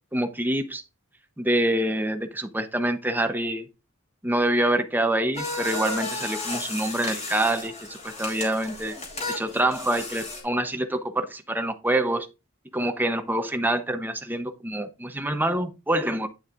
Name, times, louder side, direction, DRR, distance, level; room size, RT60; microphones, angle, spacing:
voice 1, 0.1-0.8 1.4-3.7 4.2-9.0 9.3-12.3 12.7-16.3, right 1 dB, 10° right, 0.8 m, -26 dB
sound 1, 5.3-10.4, left 2 dB, 35° left, 3.9 m, -33 dB
9.8 x 7.0 x 2.5 m
head